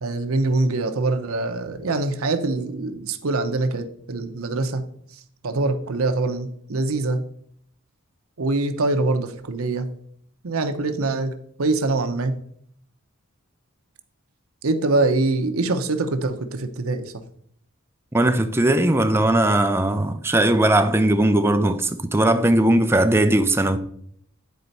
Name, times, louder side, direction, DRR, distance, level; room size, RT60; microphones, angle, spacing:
voice 1, 0.0-4.8 5.4-7.2 8.4-9.9 10.4-12.3 14.6-17.1, right 2 dB, 80° right, 0.8 m, -24 dB
voice 2, 18.1-23.8, right 1 dB, 10° right, 0.5 m, -19 dB
9.5 x 4.3 x 4.1 m
head